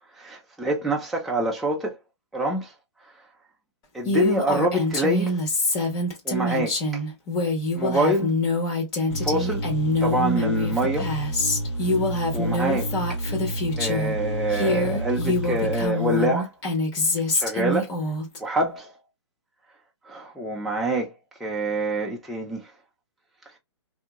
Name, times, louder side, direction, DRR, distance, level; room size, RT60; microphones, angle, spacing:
voice 1, 0.2-2.0 2.3-2.7 3.9-5.4 6.3-6.8 7.8-8.3 9.2-9.6 10.0-11.1 12.3-12.9 13.8-16.5 17.3-17.9 18.4-18.9 20.1-21.1 21.4-22.7, right 1 dB, ahead, 0.3 m, -26 dB
Female speech woman speaking, 4.0-14.1 14.5-18.4, left 2 dB, 25° left, 1.1 m, -25 dB
sound 1, 9.1-15.9, right 1 dB, 85° left, 1.2 m, -30 dB
2.7 x 2.6 x 2.3 m
hypercardioid pair, 140°, 15 cm